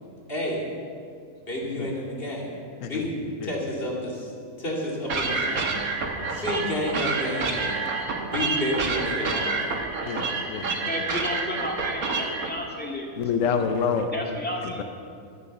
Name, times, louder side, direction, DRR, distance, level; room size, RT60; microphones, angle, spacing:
voice 1, 0.3-0.7 1.4-2.6 2.8-3.2 3.4-4.3 4.6-5.8 6.3-7.8 8.2-9.7, left 1 dB, 40° left, -3 dB, 2.8 m, -30 dB
sound 1, 5.1-12.5, right 4 dB, 90° right, 1.7 m, -28 dB
voice 2, 10.0-10.7 13.2-14.1 14.6-14.8, left 6 dB, 70° left, 7 dB, 1.2 m, -27 dB
voice 3, 10.9-13.2 14.1-14.8, left 1 dB, 5° left, -1 dB, 1.9 m, -32 dB
12.5 x 11.0 x 6.6 m, 2.4 s
omnidirectional pair, 1.4 m